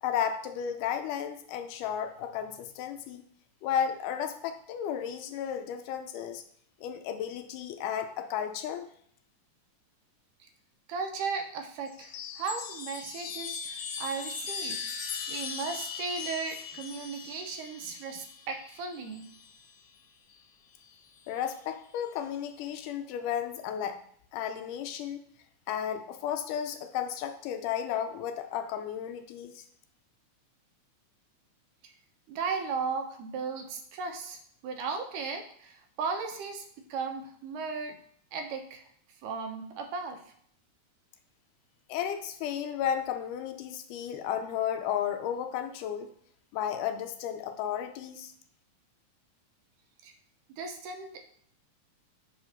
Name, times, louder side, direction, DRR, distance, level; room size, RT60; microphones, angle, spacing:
voice 1, 0.0-3.2 3.6-6.4 6.8-8.9 21.3-24.0 24.3-25.2 25.7-29.7 41.9-46.1 46.5-48.3, left 9 dB, 85° left, 7 dB, 2.2 m, -33 dB
voice 2, 10.9-14.8 15.3-19.2 31.8-31.9 32.3-36.6 36.9-38.0 38.3-38.9 39.2-40.2 50.0-50.1 50.6-51.2, right 5 dB, 85° right, 4 dB, 2.4 m, -36 dB
Chime, 11.9-19.7 20.9-21.6, left 6 dB, 70° left, 1.7 m, -39 dB
6.2 x 2.9 x 5.6 m, 0.64 s
omnidirectional pair, 3.6 m